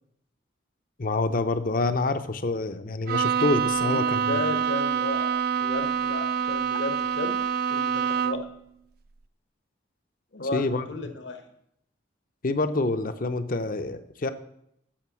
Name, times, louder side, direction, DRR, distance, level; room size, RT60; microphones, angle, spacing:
voice 1, 1.0-4.4 10.5-10.9 12.4-14.3, left 2 dB, 45° left, 10 dB, 0.6 m, -27 dB
Bowed string instrument, 3.1-8.6, right 7 dB, 50° right, 0.4 m, -26 dB
voice 2, 3.8-7.3 7.7-8.5 10.3-11.4, left 2 dB, 65° left, 6 dB, 1.2 m, -34 dB
8.7 x 6.9 x 6.2 m, 0.76 s
head